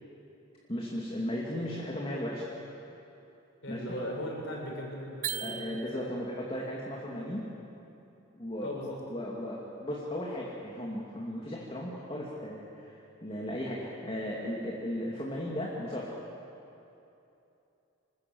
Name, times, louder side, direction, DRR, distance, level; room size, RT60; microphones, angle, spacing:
voice 1, 0.7-2.4 3.7-3.8 5.4-7.4 8.4-16.1, left 1 dB, 25° left, -4 dB, 2.6 m, -36 dB
voice 2, 3.6-5.6 5.9-6.1 7.1-7.2 8.6-9.0, equal, 65° left, -2 dB, 7.1 m, -38 dB
sound 1, 5.2-6.4, right 10 dB, 40° right, 0.6 m, -37 dB
26.5 x 20.5 x 7.9 m, 2.9 s
head